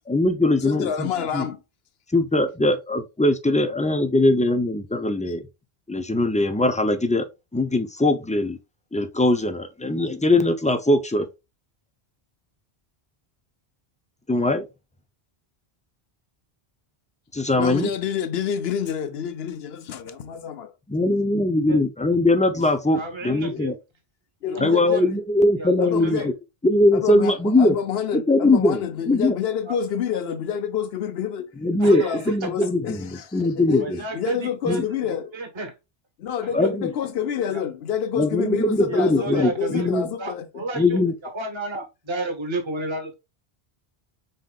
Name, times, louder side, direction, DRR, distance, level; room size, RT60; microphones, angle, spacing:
voice 1, 0.1-1.4 2.1-5.5 5.9-7.3 7.5-8.6 8.9-11.3 14.3-14.7 17.3-17.9 20.9-23.7 24.6-26.3 26.6-27.8 28.1-28.8 29.1-29.4 31.6-34.0 34.6-34.8 36.5-36.9 38.1-40.1 40.8-41.1, left 2 dB, 10° left, 0.3 m, -21 dB
voice 2, 0.6-1.6 17.6-20.7 23.5-23.6 24.4-25.0 25.8-26.3 26.9-31.6 31.9-33.8 34.1-35.3 36.2-40.8, left 8 dB, 75° left, 0.9 m, -28 dB
voice 3, 22.9-23.7 24.5-25.1 25.6-26.3 29.7-29.8 31.8-32.2 32.4-32.5 33.8-34.8 35.3-35.7 36.4-36.5 37.5-37.6 38.9-39.9 40.2-41.0 41.3-43.1, right 2 dB, 30° right, 1.0 m, -32 dB
5.5 x 3.8 x 2.3 m
omnidirectional pair, 1.0 m